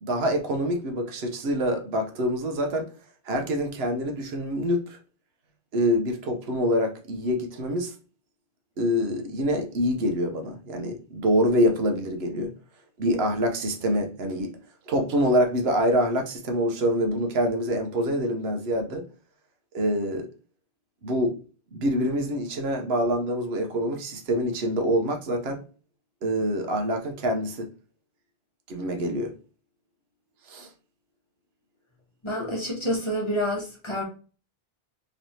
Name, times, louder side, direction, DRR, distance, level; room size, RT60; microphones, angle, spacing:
voice 1, 0.0-2.9 3.3-5.0 5.7-7.9 8.8-12.5 13.0-14.5 14.9-19.0 19.7-20.3 21.0-21.4 21.7-25.6 26.2-27.7 28.7-29.3 30.5-30.7, equal, 75° right, 0.9 m, -25 dB
voice 2, 32.2-34.0, equal, 30° left, 1.0 m, -28 dB
3.1 x 3.1 x 2.7 m
omnidirectional pair, 1.1 m